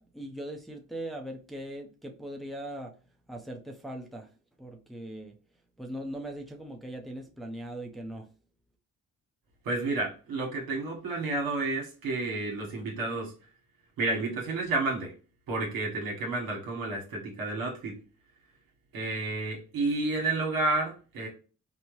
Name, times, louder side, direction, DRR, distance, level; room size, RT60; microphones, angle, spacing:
voice 1, 0.0-2.9 3.3-4.3 4.6-5.4 5.8-8.3, right 1 dB, ahead, 1 dB, 0.7 m, -40 dB
voice 2, 9.6-13.3 14.0-15.1 15.5-18.0 18.9-21.3, right 2 dB, 85° right, -1 dB, 1.3 m, -30 dB
4.2 x 2.2 x 3.1 m, 0.36 s
supercardioid pair, 60°, 34 cm